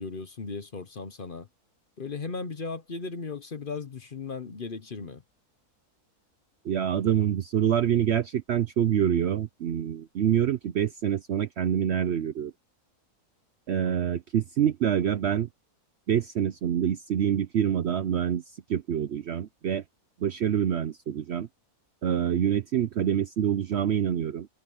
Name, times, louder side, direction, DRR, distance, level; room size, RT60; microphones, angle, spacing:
voice 1, 0.0-1.5 2.0-5.2, left 4 dB, 40° left, 1.0 m, -36 dB
voice 2, 6.6-12.5 13.7-15.5 16.1-18.4 18.7-19.8 20.2-21.5 22.0-24.5, right 9 dB, 60° right, 0.7 m, -26 dB
omnidirectional pair, 1.6 m